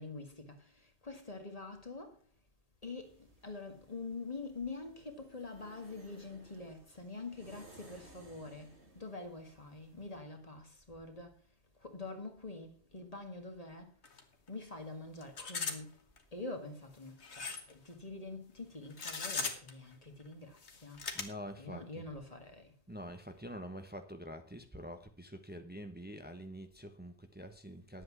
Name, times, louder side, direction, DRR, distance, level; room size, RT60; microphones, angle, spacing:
voice 1, 0.0-2.2 2.8-11.4 11.8-13.9 14.5-15.9 16.3-21.0 21.6-22.7, left 3 dB, 35° left, 1.9 m, -46 dB
sound 1, 3.0-10.2, right 1 dB, 85° right, 3.1 m, -60 dB
sound 2, 14.0-14.2 14.5-14.6 15.2-15.8 16.2-16.3 17.2-17.7 18.9-19.7 20.6-21.2, left 4 dB, 80° left, 1.8 m, -38 dB
voice 2, 21.1-22.0 22.9-28.0, equal, 10° right, 1.0 m, -46 dB
10.5 x 8.3 x 6.0 m
omnidirectional pair, 1.1 m